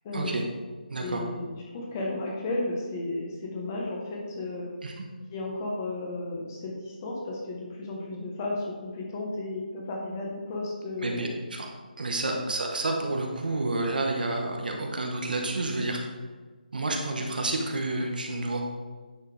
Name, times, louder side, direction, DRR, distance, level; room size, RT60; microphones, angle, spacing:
voice 1, 0.0-0.6 1.0-4.7 5.3-11.3 12.2-12.4 17.1-17.2, left 2 dB, 20° left, -1 dB, 1.2 m, -34 dB
voice 2, 0.9-1.2 4.8-5.0 11.0-11.7 12.0-16.0 16.7-18.6, right 2 dB, 65° right, 1 dB, 1.2 m, -29 dB
9.4 x 4.6 x 3.4 m, 1.4 s
hypercardioid pair, 170°, 5 cm